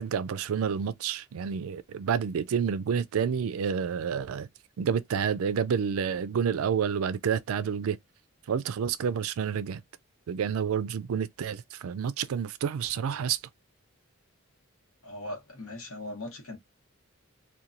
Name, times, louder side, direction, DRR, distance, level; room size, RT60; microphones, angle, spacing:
voice 1, 0.0-4.5 4.8-8.0 8.5-9.8 10.3-13.4, right 7 dB, 75° right, 0.3 m, -29 dB
voice 2, 15.0-16.6, left 1 dB, 75° left, 1.0 m, -39 dB
2.8 x 2.2 x 2.5 m
head